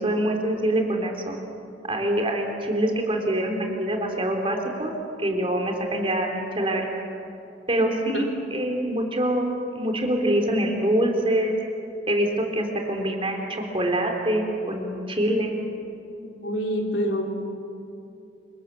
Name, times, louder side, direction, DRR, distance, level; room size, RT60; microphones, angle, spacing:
voice 1, 0.0-1.4 1.9-4.9 5.2-6.9 7.7-9.5 9.7-11.6 12.1-15.5, right 1 dB, 30° right, 2 dB, 3.5 m, -25 dB
voice 2, 7.8-8.3 16.4-17.2, equal, 75° left, 1 dB, 3.8 m, -27 dB
29.0 x 24.0 x 7.5 m, 2.7 s
head